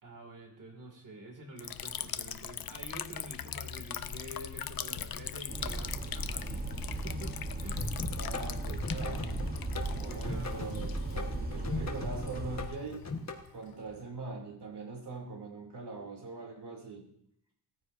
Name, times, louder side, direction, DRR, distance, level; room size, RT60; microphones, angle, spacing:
voice 1, 0.0-7.9 9.9-10.9, right 1 dB, 50° right, 1 dB, 2.5 m, -48 dB
Liquid, 1.6-14.0, left 9 dB, 65° left, 0.6 m, -41 dB
sound 1, 5.5-12.7, right 2 dB, 25° right, 1.1 m, -37 dB
sound 2, 7.8-13.4, left 3 dB, 45° left, 1.5 m, -39 dB
voice 2, 8.2-9.4 10.0-13.0 13.5-17.1, right 3 dB, 85° right, 1 dB, 3.0 m, -42 dB
17.5 x 14.0 x 2.7 m, 0.72 s
wide cardioid pair, 160°, 39 cm